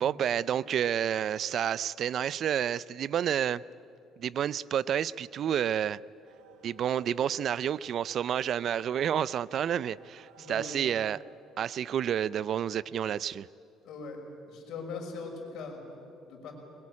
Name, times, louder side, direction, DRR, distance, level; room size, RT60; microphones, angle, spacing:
voice 1, 0.0-3.6 4.2-6.0 6.6-11.2 11.6-13.5, right 9 dB, 50° right, 20 dB, 0.5 m, -30 dB
sound 1, 6.3-11.3, right 5 dB, 90° right, 4.9 m, -56 dB
voice 2, 10.4-10.8 13.8-14.2 14.5-16.5, left 4 dB, 60° left, 1 dB, 5.8 m, -41 dB
21.5 x 21.5 x 9.8 m, 2.8 s
cardioid pair, 135°, 0 cm